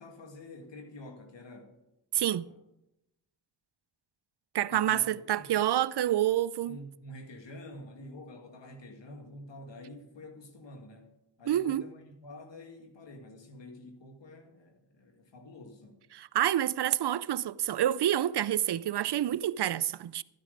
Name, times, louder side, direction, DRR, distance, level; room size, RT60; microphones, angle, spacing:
voice 1, 0.0-1.7 2.2-2.5 4.7-5.5 6.7-11.1 11.4-16.0, left 1 dB, 80° left, 2.0 m, -48 dB
voice 2, 2.1-2.5 4.5-6.8 11.5-11.8 16.1-20.2, right 12 dB, 65° right, 0.5 m, -28 dB
13.0 x 9.7 x 5.1 m
cardioid pair, 50°, 43 cm